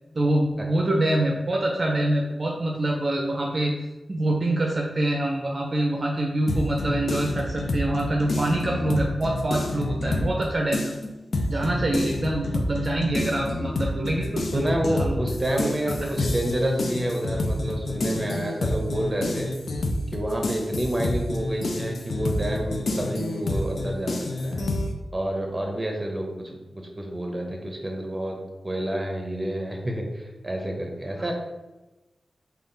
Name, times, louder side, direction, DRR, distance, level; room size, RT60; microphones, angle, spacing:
voice 1, 0.2-10.9 11.5-14.6 15.0-15.2 15.9-16.0 31.2-31.3, right 1 dB, 50° right, -1 dB, 0.5 m, -25 dB
sound 1, 6.5-10.4 10.7-24.9, left 2 dB, 75° left, 0.4 m, -28 dB
voice 2, 14.5-19.5 20.1-24.7 25.1-28.4 28.6-31.3, right 1 dB, 25° right, 1 dB, 0.8 m, -29 dB
3.5 x 2.4 x 3.9 m, 1.1 s
cardioid pair, 55°, 0 cm